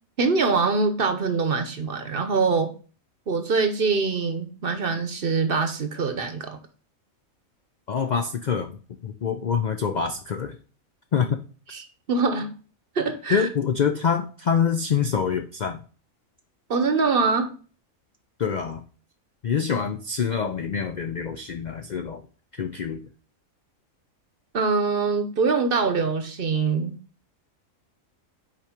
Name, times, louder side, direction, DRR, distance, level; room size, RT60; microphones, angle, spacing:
voice 1, 0.2-2.7 3.3-6.6 11.7-12.5 13.0-13.5 16.7-17.5 24.5-27.0, right 4 dB, 45° right, 7 dB, 0.9 m, -24 dB
voice 2, 7.9-8.8 9.0-10.6 11.1-11.4 13.3-15.8 18.4-18.8 19.4-22.2 22.5-23.0, left 7 dB, 65° left, 6 dB, 0.4 m, -25 dB
5.7 x 4.6 x 5.1 m, 0.39 s
omnidirectional pair, 1.4 m